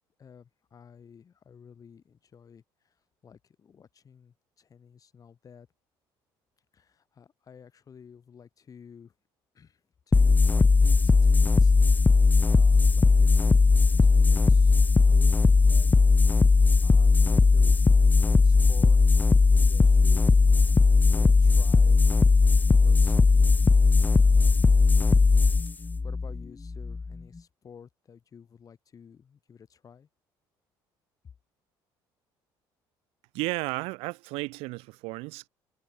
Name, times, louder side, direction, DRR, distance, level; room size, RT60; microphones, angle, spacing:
voice 1, 0.2-3.0 3.2-5.7 6.7-9.1 9.5-14.8 15.1-22.0 22.8-23.7 24.1-24.7 25.8-30.1, left 7 dB, 40° left, 7.4 m, -52 dB
sound 1, 10.1-27.2, left 4 dB, 20° left, 0.6 m, -19 dB
voice 2, 33.3-35.5, right 25 dB, 85° right, 1.1 m, -33 dB
cardioid pair, 105°, 10 cm